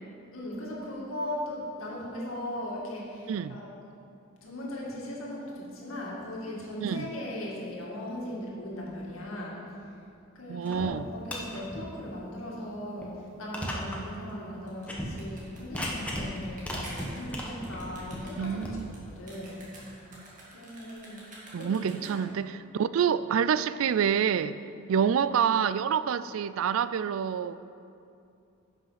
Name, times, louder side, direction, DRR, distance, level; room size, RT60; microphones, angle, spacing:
voice 1, 0.3-3.7 4.4-9.6 10.3-18.7 19.2-19.8 20.5-21.2 21.5-22.3, left 1 dB, 80° left, -4 dB, 2.2 m, -38 dB
voice 2, 3.3-3.6 6.8-7.1 10.5-11.1 18.4-19.0 20.1-20.2 21.5-24.6 24.9-27.6, right 7 dB, 70° right, 15 dB, 0.3 m, -27 dB
sound 1, 10.6-10.9 11.2-11.8 12.2-12.3 13.0-13.1 13.5-14.0 14.3-14.4 14.8-15.1 15.6-16.3 16.6-18.7, equal, 5° left, 1.2 m, -36 dB
sound 2, 14.7-22.4, right 1 dB, 40° right, 2.2 m, -49 dB
10.5 x 6.3 x 5.8 m, 2.6 s
head